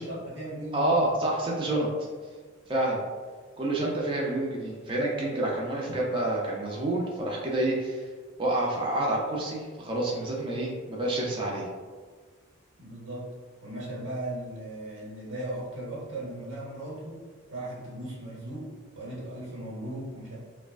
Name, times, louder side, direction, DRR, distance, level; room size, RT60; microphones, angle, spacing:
voice 1, 0.0-1.1 12.8-13.3 13.6-17.2 17.5-20.4, right 1 dB, 65° right, -5 dB, 1.1 m, -37 dB
voice 2, 0.7-1.9 2.7-3.0 3.6-8.1 8.4-11.7, right 1 dB, 25° right, -3 dB, 0.4 m, -28 dB
4.8 x 2.2 x 2.3 m, 1.5 s
head